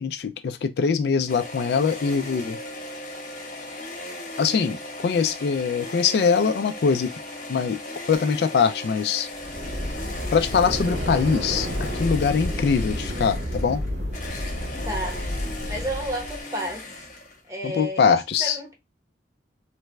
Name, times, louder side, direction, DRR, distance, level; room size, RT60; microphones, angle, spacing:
voice 1, 0.0-2.6 4.4-4.8 5.0-7.1 7.5-7.8 8.1-9.3 10.3-11.7 11.9-13.8 17.7-18.6, left 6 dB, 65° left, 0.3 m, -22 dB
sound 1, 1.3-17.5, left 2 dB, 45° left, 1.1 m, -37 dB
sound 2, 9.4-16.4, equal, 70° right, 1.7 m, -30 dB
voice 2, 14.8-15.3 15.7-16.9 17.5-18.7, equal, 20° right, 1.0 m, -31 dB
3.2 x 2.3 x 3.1 m
head